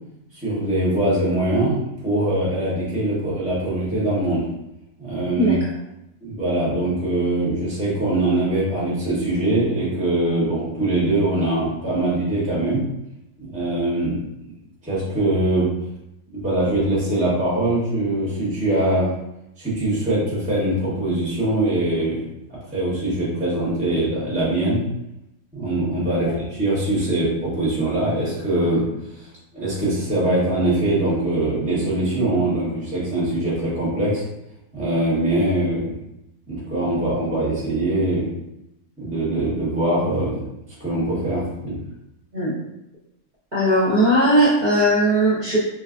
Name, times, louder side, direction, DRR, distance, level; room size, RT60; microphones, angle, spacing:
voice 1, 0.4-4.4 5.0-5.5 6.2-12.8 13.4-14.2 14.8-15.7 16.3-19.1 19.6-22.2 22.5-24.8 25.5-28.8 29.2-29.3 29.5-34.2 34.7-35.9 36.5-38.3 39.0-40.5 40.8-41.8, right 1 dB, 5° right, -7 dB, 0.8 m, -22 dB
voice 2, 43.5-45.6, equal, 35° right, -9 dB, 0.9 m, -18 dB
3.4 x 2.3 x 2.4 m, 0.86 s
omnidirectional pair, 1.5 m